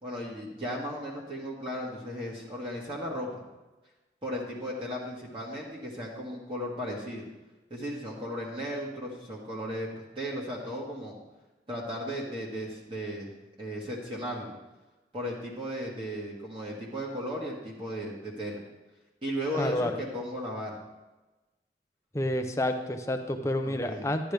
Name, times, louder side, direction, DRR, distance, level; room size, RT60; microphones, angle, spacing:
voice 1, 0.0-3.4 4.2-7.2 7.7-11.2 11.7-13.3 13.6-14.5 15.1-18.6 19.2-20.8 23.6-24.1, equal, 30° right, -4 dB, 1.6 m, -35 dB
voice 2, 19.6-19.9 22.1-24.3, left 1 dB, 15° left, 6 dB, 0.6 m, -29 dB
11.5 x 10.5 x 3.4 m, 1.1 s
head